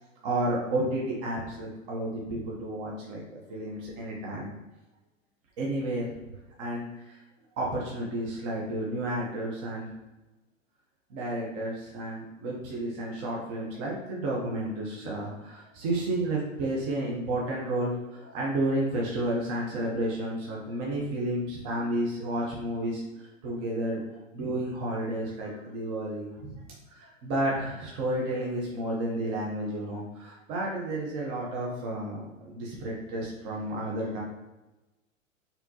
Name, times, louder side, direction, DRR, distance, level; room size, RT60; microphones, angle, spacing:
voice 1, 0.2-4.5 5.6-6.1 6.6-7.2 7.6-9.9 11.1-24.0 24.3-26.6 26.9-34.2, right 1 dB, 40° right, -3 dB, 1.0 m, -31 dB
4.3 x 3.6 x 2.8 m, 1.1 s
hypercardioid pair, 125°, 40 cm